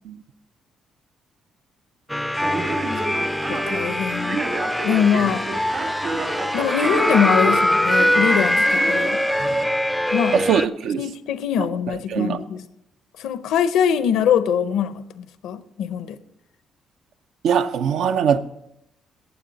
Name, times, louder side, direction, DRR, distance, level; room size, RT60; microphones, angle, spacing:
sound 1, 2.1-10.7, left 1 dB, 5° left, 0.4 m, -22 dB
Male speech man speaking, 2.3-9.6, right 3 dB, 55° right, 2.4 m, -31 dB
voice 1, 3.5-4.4 4.8-5.5 6.5-9.2 10.1-10.4 11.0-12.6 13.2-16.2, left 8 dB, 85° left, 0.6 m, -23 dB
voice 2, 10.3-11.0 12.1-12.4 17.4-18.4, right 7 dB, 75° right, 0.6 m, -21 dB
15.0 x 9.3 x 4.0 m
cardioid pair, 90°, 0 cm